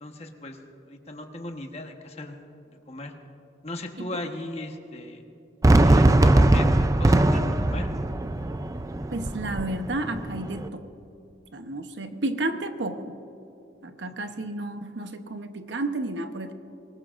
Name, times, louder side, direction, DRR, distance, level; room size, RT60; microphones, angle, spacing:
voice 1, 0.0-0.6 0.9-2.4 2.9-3.1 3.6-5.2 5.8-7.9 14.0-14.4, left 1 dB, 35° left, 4 dB, 1.1 m, -37 dB
Fireworks, 5.6-10.7, right 1 dB, 15° right, 0.4 m, -21 dB
voice 2, 9.1-10.9 11.5-13.1 13.8-16.5, right 2 dB, 70° right, 8 dB, 0.9 m, -32 dB
23.5 x 20.0 x 2.5 m, 2.9 s
head